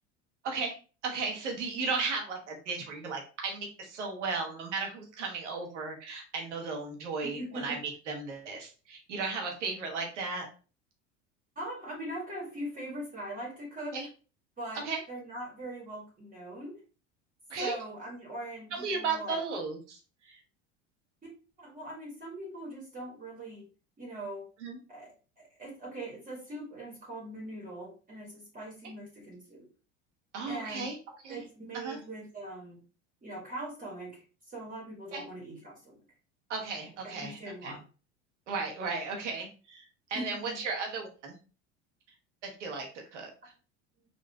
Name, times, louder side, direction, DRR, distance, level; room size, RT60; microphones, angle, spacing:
voice 1, 0.4-0.8 1.0-10.5 13.9-14.1 14.8-15.0 17.5-17.8 18.7-20.4 24.6-24.8 30.3-31.0 31.2-31.4 31.7-32.0 35.1-35.2 36.5-37.8 38.5-39.8 40.1-41.4 42.4-43.3, right 4 dB, 90° right, 1 dB, 1.0 m, -35 dB
voice 2, 7.4-7.8 11.5-14.0 14.6-16.8 17.6-19.4 21.2-21.3 21.6-23.7 24.0-24.5 24.9-29.7 30.5-30.9 31.3-32.8 33.2-36.0 37.0-37.8 40.1-40.6, right 1 dB, 25° right, -3 dB, 1.3 m, -41 dB
3.8 x 2.4 x 2.2 m, 0.35 s
hypercardioid pair, 80°, 35 cm